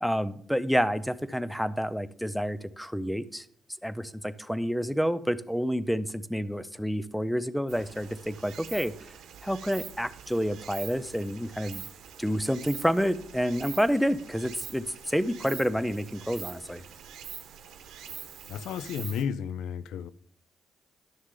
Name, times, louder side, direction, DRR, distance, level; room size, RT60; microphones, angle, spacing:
voice 1, 0.0-3.5 3.8-8.9 9.4-11.8 12.2-16.8, equal, ahead, 0.5 m, -29 dB
Stream, 7.7-19.2, right 9 dB, 75° right, 1.1 m, -44 dB
voice 2, 18.5-20.1, left 8 dB, 85° left, 0.3 m, -32 dB
11.0 x 6.4 x 3.7 m
cardioid pair, 90°, 0 cm